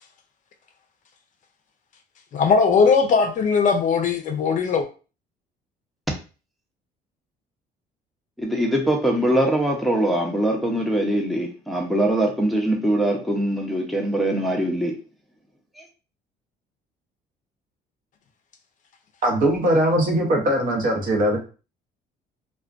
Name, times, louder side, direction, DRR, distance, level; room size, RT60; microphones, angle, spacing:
voice 1, 2.3-4.9, left 5 dB, 50° left, 0.4 m, -19 dB
voice 2, 8.4-15.0, right 1 dB, ahead, 0.6 m, -22 dB
voice 3, 19.2-21.4, right 1 dB, 55° right, 0.8 m, -20 dB
2.4 x 2.2 x 2.3 m
cardioid pair, 110°, 17 cm